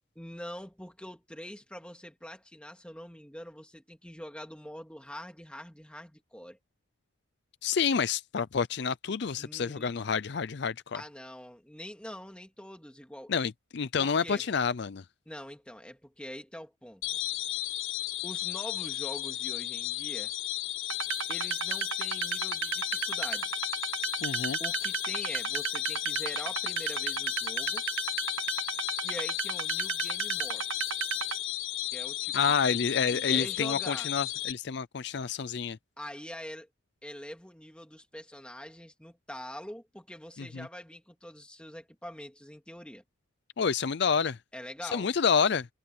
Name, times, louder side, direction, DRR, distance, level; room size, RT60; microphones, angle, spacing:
voice 1, 0.2-6.6 9.3-9.9 10.9-13.3 14.0-14.5 15.3-17.0 18.2-20.3 21.3-23.6 24.3-27.8 29.0-30.7 31.9-34.1 36.0-36.7 37.0-43.0 44.5-45.1, equal, 5° left, 2.4 m, -44 dB
voice 2, 7.6-11.0 13.3-15.0 24.2-24.6 32.3-35.8 40.5-40.7 43.6-44.4 44.8-45.7, left 6 dB, 55° left, 0.5 m, -28 dB
sound 1, 17.0-34.5, left 15 dB, 80° left, 1.5 m, -34 dB
sound 2, 20.9-31.4, right 6 dB, 80° right, 1.4 m, -34 dB
head